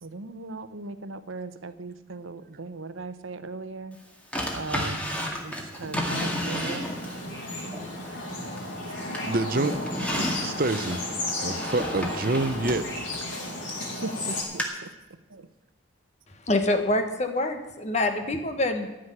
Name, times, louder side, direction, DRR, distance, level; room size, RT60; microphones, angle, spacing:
voice 1, 0.0-4.0 4.5-5.1 5.4-6.9 13.8-14.6 15.3-15.5, right 3 dB, 80° right, 12 dB, 0.9 m, -38 dB
Drawer open or close, 4.3-7.2 7.7-8.8 9.1-13.9 14.6-14.7, equal, 5° left, 2.1 m, -32 dB
sound 1, 6.1-14.4, left 2 dB, 60° left, 4.3 m, -34 dB
voice 2, 9.2-9.7 10.1-11.0 11.4-12.9, right 2 dB, 45° right, 12 dB, 0.7 m, -27 dB
voice 3, 16.5-18.9, left 2 dB, 35° left, 6 dB, 1.3 m, -25 dB
14.5 x 6.4 x 9.9 m, 1.0 s
head